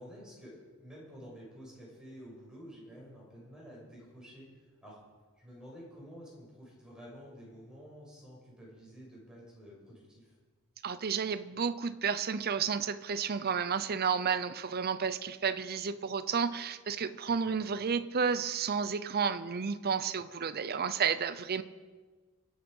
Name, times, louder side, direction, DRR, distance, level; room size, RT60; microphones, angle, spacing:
voice 1, 0.0-4.4 4.8-5.0 5.4-10.3 17.3-17.6, equal, 5° right, -5 dB, 6.3 m, -50 dB
voice 2, 10.8-21.6, right 6 dB, 45° right, 12 dB, 0.6 m, -31 dB
25.0 x 8.7 x 5.5 m, 1.4 s
head